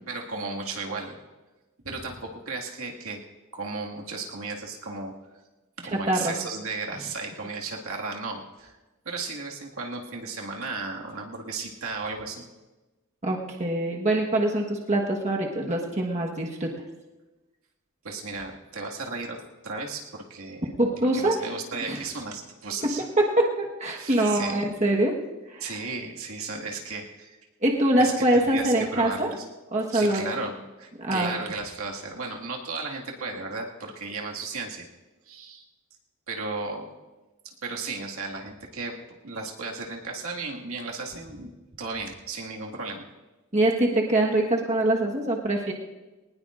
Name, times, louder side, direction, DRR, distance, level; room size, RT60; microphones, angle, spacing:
voice 1, 0.1-1.2 1.8-3.2 3.5-5.1 5.8-8.8 9.1-12.5 18.0-19.4 19.6-23.0 24.0-24.6 25.6-27.4 28.0-29.4 29.9-34.9 35.3-35.6 36.3-36.9 37.4-39.0 39.2-41.5 41.8-43.1, right 3 dB, 80° right, 0 dB, 2.0 m, -35 dB
voice 2, 13.2-16.7 20.8-21.4 21.8-22.0 22.8-22.9 23.2-25.2 25.5-25.8 27.6-29.3 29.7-30.2 31.0-31.3 43.5-45.7, right 1 dB, 35° right, -1 dB, 1.4 m, -24 dB
21.0 x 19.0 x 2.6 m, 1.2 s
head